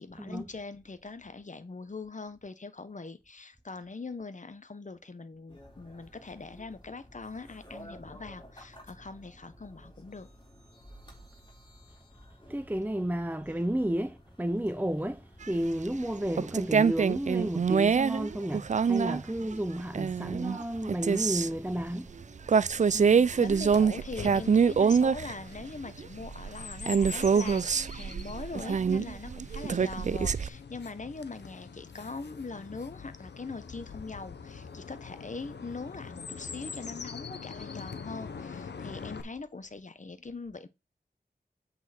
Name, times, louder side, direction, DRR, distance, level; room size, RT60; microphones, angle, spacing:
voice 1, 0.0-10.3 22.9-40.7, left 3 dB, 45° left, 1.2 m, -42 dB
sound 1, 5.5-23.4, equal, 25° left, 4.4 m, -54 dB
voice 2, 12.5-15.2 15.5-22.1, right 1 dB, 10° right, 0.7 m, -32 dB
sound 2, 15.9-16.0 16.4-21.5 22.2-22.3 22.5-25.3 25.6-25.7 25.9-30.5, right 6 dB, 45° right, 0.4 m, -25 dB
Chirp tweet, 22.9-39.2, left 5 dB, 85° left, 0.9 m, -44 dB
8.1 x 5.5 x 4.4 m
wide cardioid pair, 55°, 17 cm